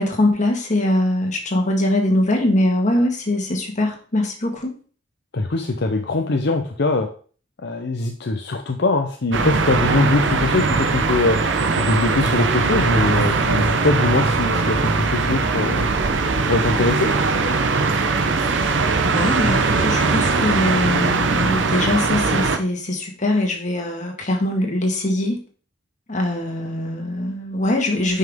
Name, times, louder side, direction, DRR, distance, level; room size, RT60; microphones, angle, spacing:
voice 1, 0.0-4.7 18.5-18.7 19.0-25.4 26.1-28.2, left 1 dB, 40° left, 2 dB, 1.8 m, -22 dB
voice 2, 5.3-7.1 7.6-11.4 11.8-15.9 16.4-17.1, left 3 dB, 65° left, 4 dB, 0.7 m, -22 dB
sound 1, 9.3-22.6, right 4 dB, 75° right, 0.8 m, -20 dB
9.3 x 5.6 x 3.7 m, 0.42 s
head